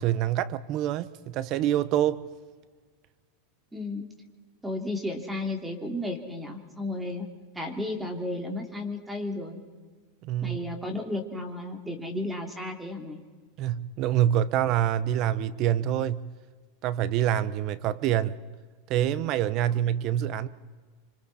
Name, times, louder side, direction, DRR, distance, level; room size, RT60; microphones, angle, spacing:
voice 1, 0.0-2.2 10.2-10.6 13.6-16.3 16.8-18.4 18.9-20.5, right 11 dB, 50° right, 1.0 m, -26 dB
voice 2, 3.7-4.1 4.6-7.3 7.5-9.6 10.4-13.2, left 1 dB, 10° right, 3.1 m, -33 dB
26.0 x 26.0 x 4.4 m
hypercardioid pair, 110°, 0 cm